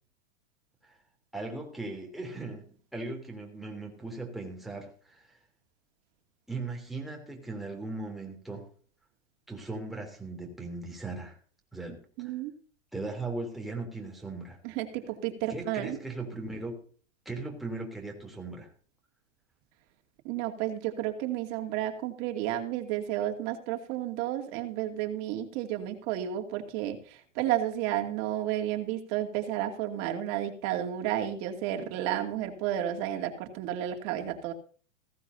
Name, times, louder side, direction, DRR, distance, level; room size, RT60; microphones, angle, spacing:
voice 1, 1.3-2.6 2.9-5.4 6.5-8.7 9.5-11.4 11.7-12.3 12.9-14.6 15.5-16.8 17.2-18.7, right 3 dB, ahead, 0 dB, 3.2 m, -38 dB
voice 2, 12.2-12.5 14.6-16.0 20.2-34.5, right 12 dB, 40° right, 4 dB, 2.6 m, -32 dB
16.0 x 14.5 x 2.8 m, 0.43 s
hypercardioid pair, 135°, 37 cm